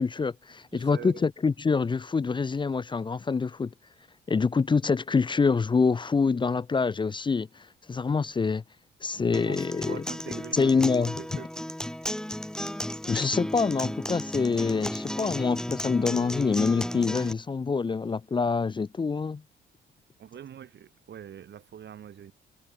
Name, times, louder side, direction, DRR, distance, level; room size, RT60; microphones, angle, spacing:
voice 1, 0.0-3.7 4.3-7.5 7.9-8.6 9.0-10.0 10.5-11.4 13.1-19.4, left 4 dB, 25° left, 0.6 m, -26 dB
voice 2, 0.7-1.3 9.1-11.5 20.2-22.3, right 9 dB, 60° right, 7.4 m, -44 dB
Acoustic guitar, 9.3-17.3, left 1 dB, 5° left, 1.1 m, -34 dB
cardioid pair, 90°, 20 cm